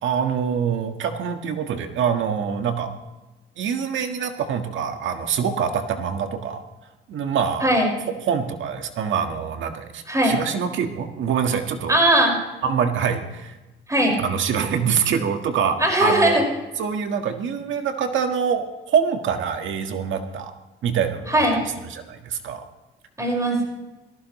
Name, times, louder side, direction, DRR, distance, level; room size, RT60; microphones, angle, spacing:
voice 1, 0.0-2.9 3.6-6.6 7.1-7.7 8.2-12.0 12.6-13.6 14.2-16.4 16.8-20.5 20.8-21.5 21.9-22.6, right 7 dB, 75° right, 6 dB, 1.7 m, -25 dB
voice 2, 11.9-12.3 13.9-14.2 15.8-16.4 21.3-21.7 23.2-23.6, right 1 dB, 15° right, 1 dB, 5.5 m, -19 dB
18.5 x 15.0 x 3.2 m, 1.1 s
cardioid pair, 90°, 20 cm